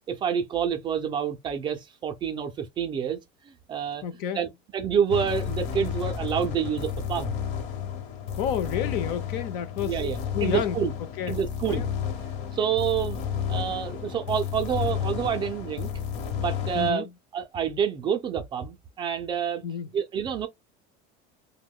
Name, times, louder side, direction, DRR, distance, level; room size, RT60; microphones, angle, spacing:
voice 1, 0.1-3.2 3.5-4.0 4.4-4.5 4.7-7.4 9.8-10.9 11.3-11.8 12.5-13.2 13.5-15.9 16.4-17.0 17.3-19.6 19.9-20.5, right 8 dB, 25° right, 0.4 m, -28 dB
voice 2, 4.0-4.4 8.4-10.0 10.3-10.8 11.2-11.4 11.7-11.9 16.7-17.1 19.6-19.9, left 8 dB, 50° left, 0.5 m, -30 dB
sound 1, 5.1-16.9, left 8 dB, 70° left, 0.9 m, -32 dB
3.0 x 2.1 x 3.5 m
cardioid pair, 175°, 20 cm